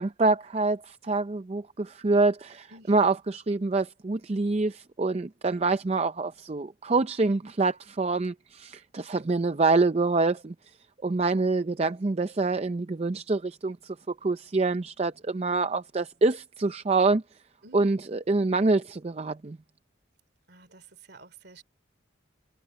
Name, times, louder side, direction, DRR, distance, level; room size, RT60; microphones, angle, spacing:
voice 1, 0.0-10.5 11.0-14.0 14.2-17.2 17.7-19.6, right 3 dB, 30° right, 0.5 m, -26 dB
voice 2, 2.7-3.1 17.6-18.1 20.5-21.6, right 3 dB, 55° right, 2.9 m, -51 dB
head